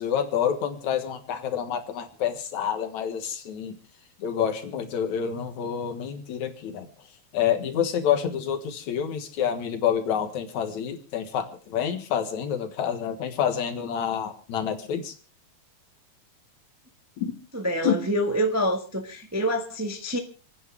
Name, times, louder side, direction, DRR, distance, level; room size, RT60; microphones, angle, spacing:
voice 1, 0.0-3.8 4.2-6.9 7.3-15.1 17.2-17.4 17.8-17.9, left 8 dB, 75° left, 7 dB, 2.9 m, -28 dB
voice 2, 17.5-20.2, equal, 15° right, 3 dB, 0.5 m, -26 dB
28.5 x 9.8 x 3.4 m, 0.35 s
omnidirectional pair, 3.4 m